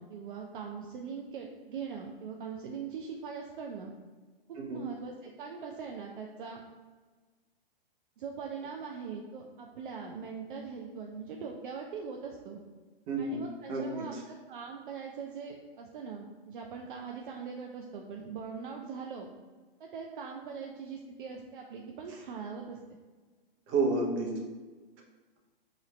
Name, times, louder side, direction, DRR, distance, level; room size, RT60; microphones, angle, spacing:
voice 1, 0.0-3.9 4.5-6.6 8.2-12.6 13.2-19.3 19.8-22.8, right 6 dB, 60° right, 1 dB, 0.4 m, -41 dB
voice 2, 13.1-13.4 13.7-14.2 22.1-22.2 23.7-24.3, right 3 dB, 35° right, -1 dB, 0.7 m, -30 dB
3.0 x 2.4 x 3.1 m, 1.3 s
hypercardioid pair, 125°, 30 cm